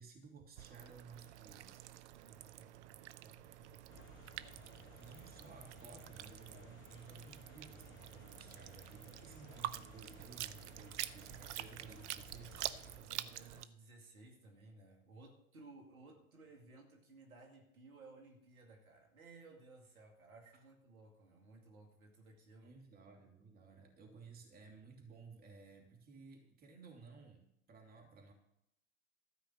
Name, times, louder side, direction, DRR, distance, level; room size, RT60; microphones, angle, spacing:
voice 1, 0.0-1.9 5.0-12.7 22.6-28.3, right 4 dB, 20° right, 2.8 m, -57 dB
sound 1, 0.6-13.7, right 13 dB, 55° right, 0.7 m, -48 dB
voice 2, 2.2-4.0 4.5-5.2 11.4-11.5 13.0-22.7, right 3 dB, 75° right, 2.5 m, -59 dB
sound 2, 3.9-13.0, left 5 dB, 25° left, 1.5 m, -60 dB
13.5 x 5.6 x 7.5 m
figure-of-eight pair, 95°, 43 cm